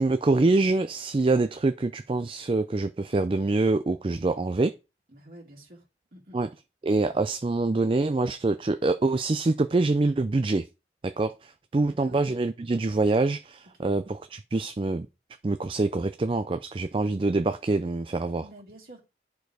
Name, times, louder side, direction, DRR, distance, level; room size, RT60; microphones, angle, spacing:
voice 1, 0.0-4.7 6.3-6.5 6.8-10.6 11.0-15.1 15.4-18.4, right 3 dB, 30° right, 0.4 m, -25 dB
voice 2, 5.1-5.8 6.1-6.4 11.8-12.2 13.7-13.9 18.4-19.0, right 1 dB, 55° right, 2.5 m, -49 dB
10.5 x 4.5 x 4.8 m
head